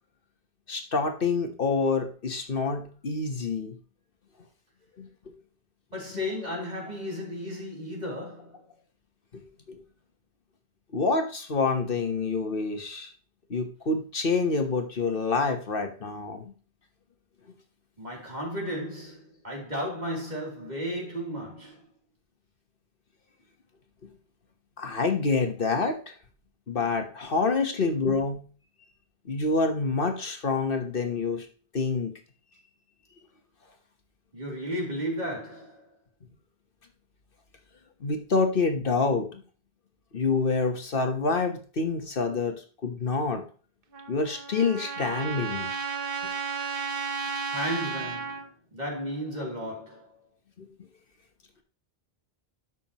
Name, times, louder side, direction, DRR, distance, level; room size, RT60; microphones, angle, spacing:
voice 1, 0.7-3.7 5.0-5.1 9.3-9.4 9.7-9.8 10.9-13.1 13.5-16.4 24.8-26.1 26.7-28.4 29.3-31.5 31.7-32.1 38.0-39.4 40.1-42.6 42.8-43.4 44.1-45.7 50.6-50.7, left 4 dB, 60° left, 1.4 m, -27 dB
voice 2, 5.9-8.6 18.0-21.8 34.3-35.9 47.5-50.1, equal, 45° right, 3.3 m, -34 dB
Trumpet, 43.9-48.5, right 5 dB, 60° right, 1.2 m, -33 dB
13.0 x 6.3 x 3.0 m
omnidirectional pair, 1.1 m